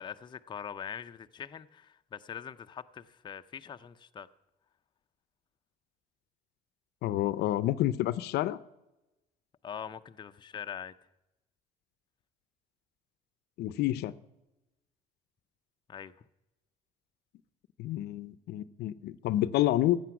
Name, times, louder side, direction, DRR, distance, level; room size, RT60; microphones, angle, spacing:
voice 1, 0.0-4.3 9.6-10.9 15.9-16.1, left 8 dB, 25° left, 0.5 m, -42 dB
voice 2, 7.0-8.6 13.6-14.1 17.8-20.0, left 14 dB, 75° left, 0.5 m, -29 dB
14.0 x 8.5 x 5.9 m
cardioid pair, 110°, 17 cm